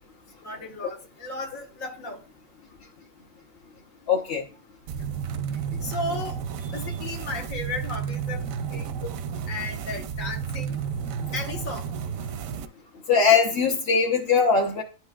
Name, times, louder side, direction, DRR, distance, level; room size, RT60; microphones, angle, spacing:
voice 1, 0.4-2.2 5.8-6.4 6.7-8.4 8.7-8.9 9.5-10.8 11.3-11.9, left 2 dB, 85° left, 1.8 m, -34 dB
voice 2, 4.1-4.4 13.1-14.8, left 5 dB, 50° left, 1.1 m, -20 dB
sound 1, 4.9-12.7, right 7 dB, 85° right, 1.0 m, -32 dB
11.5 x 4.5 x 2.4 m
omnidirectional pair, 1.4 m